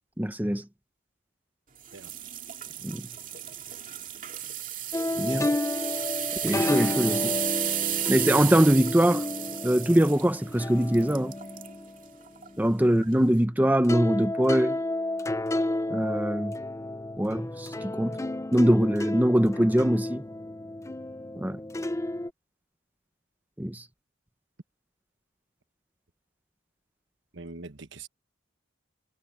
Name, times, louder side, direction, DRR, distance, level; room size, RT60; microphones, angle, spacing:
voice 1, 0.2-0.6 2.8-3.0 5.2-5.5 6.4-7.3 8.1-9.2 9.6-11.3 12.6-14.8 15.9-16.6 17.2-18.2 18.5-20.2 21.4-21.6 23.6-23.8, right 1 dB, 10° right, 0.8 m, -23 dB
sound 1, 1.8-11.7 12.3-12.5 13.0-13.1, right 11 dB, 40° right, 2.3 m, -33 dB
sound 2, 4.9-13.5 13.8-22.3, left 2 dB, 15° left, 0.4 m, -32 dB
voice 2, 5.1-5.4 27.3-28.1, right 3 dB, 60° right, 1.2 m, -43 dB
head